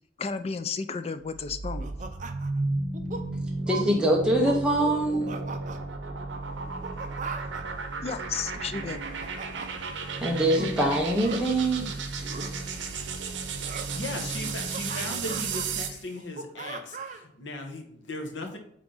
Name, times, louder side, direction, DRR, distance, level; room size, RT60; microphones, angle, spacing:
voice 1, 0.2-1.9 8.0-9.0, left 5 dB, 30° left, 11 dB, 0.4 m, -33 dB
sound 1, 1.3-16.0, right 3 dB, 70° right, 0.8 m, -34 dB
sound 2, 1.8-2.6 2.9-3.2 3.7-3.9 4.3-4.6 5.0-5.8 6.6-7.6 8.7-9.7 10.5-10.7 11.2-11.4 12.2-12.5 13.6-13.9 14.4-15.7 16.2-17.2, right 4 dB, 40° right, 0.5 m, -38 dB
voice 2, 3.7-5.3 10.2-11.9, right 1 dB, 5° right, -2 dB, 0.8 m, -24 dB
voice 3, 13.9-18.6, left 2 dB, 75° left, 3 dB, 1.2 m, -37 dB
8.5 x 3.6 x 4.0 m, 0.70 s
head